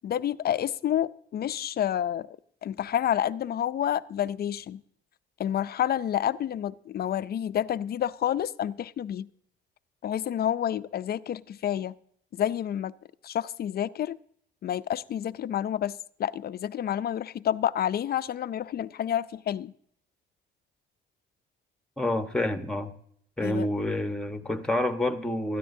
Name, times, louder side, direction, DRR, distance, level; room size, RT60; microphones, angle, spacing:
voice 1, 0.0-2.3 2.6-4.8 5.4-9.3 10.0-11.9 12.3-12.9 13.2-14.2 14.6-19.7 23.4-23.7, left 10 dB, 50° left, 0.4 m, -29 dB
voice 2, 22.0-22.9 23.4-25.6, left 1 dB, 5° left, 1.2 m, -28 dB
16.5 x 13.5 x 2.7 m
cardioid pair, 90°, 20 cm